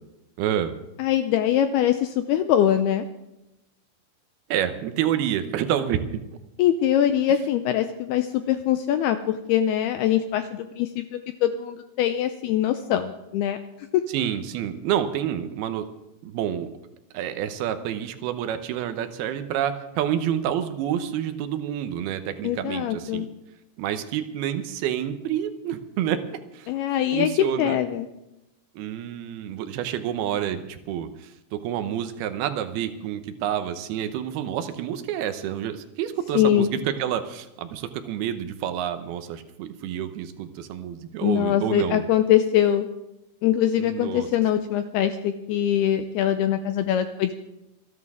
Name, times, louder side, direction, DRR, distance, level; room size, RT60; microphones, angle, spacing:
voice 1, 0.4-0.7 4.5-6.2 14.1-15.9 16.2-16.7 17.1-23.3 23.8-26.2 26.5-26.7 27.1-27.8 28.8-42.1 43.8-44.3, right 10 dB, 75° right, 8 dB, 2.5 m, -28 dB
voice 2, 1.0-3.1 6.6-11.1 11.4-13.6 13.9-14.0 22.4-23.3 26.7-28.1 36.3-36.7 41.2-42.9 43.4-47.3, left 11 dB, 90° left, 8 dB, 2.3 m, -23 dB
27.5 x 11.0 x 3.6 m, 0.91 s
omnidirectional pair, 5.3 m